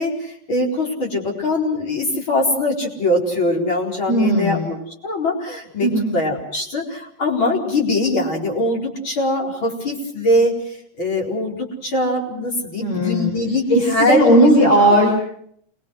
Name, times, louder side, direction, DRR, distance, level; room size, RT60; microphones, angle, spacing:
voice 1, 0.0-10.6 11.0-14.5 14.9-15.0, left 1 dB, 40° left, -1 dB, 5.0 m, -22 dB
voice 2, 4.1-4.7 5.8-6.1 12.8-13.3 13.7-15.1, equal, 60° left, 0 dB, 6.1 m, -16 dB
28.0 x 21.5 x 6.3 m, 0.66 s
omnidirectional pair, 3.5 m